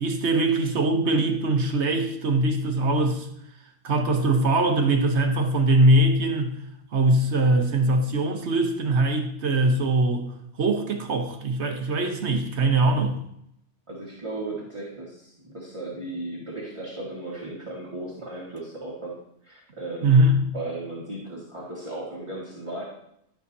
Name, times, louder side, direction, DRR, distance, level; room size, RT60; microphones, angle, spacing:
voice 1, 0.0-3.3 3.8-6.6 6.9-10.3 10.6-13.2 20.0-20.4, right 2 dB, 65° right, 5 dB, 1.3 m, -22 dB
voice 2, 13.9-19.1 19.4-20.2 20.5-22.8, right 2 dB, 25° right, -7 dB, 1.8 m, -36 dB
12.5 x 6.3 x 2.7 m, 0.75 s
omnidirectional pair, 1.2 m